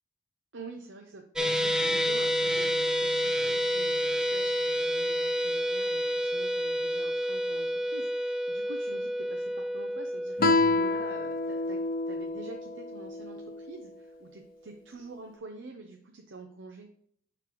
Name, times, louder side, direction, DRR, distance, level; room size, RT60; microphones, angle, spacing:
voice 1, 0.5-11.8 12.1-16.9, right 3 dB, 65° right, 3 dB, 0.7 m, -47 dB
sound 1, 1.4-13.7, equal, 5° right, 0.5 m, -30 dB
Guitar, 10.4-13.6, left 3 dB, 50° left, 0.6 m, -28 dB
10.5 x 3.9 x 3.0 m, 0.63 s
head